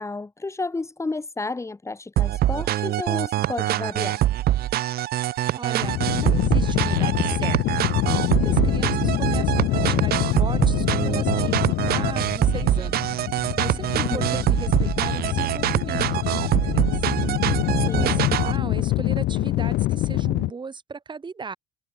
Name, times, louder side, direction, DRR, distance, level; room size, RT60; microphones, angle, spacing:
voice 1, 0.0-4.2 14.0-14.2 17.9-18.2, left 3 dB, 15° left, 4.3 m, -31 dB
sound 1, 2.2-18.6, right 14 dB, 65° right, 1.3 m, -24 dB
voice 2, 5.5-7.6 8.1-13.2 13.6-17.1 17.8-21.6, right 5 dB, 25° right, 4.9 m, -37 dB
sound 2, 5.8-20.5, left 17 dB, 70° left, 0.6 m, -25 dB
cardioid pair, 110°, 17 cm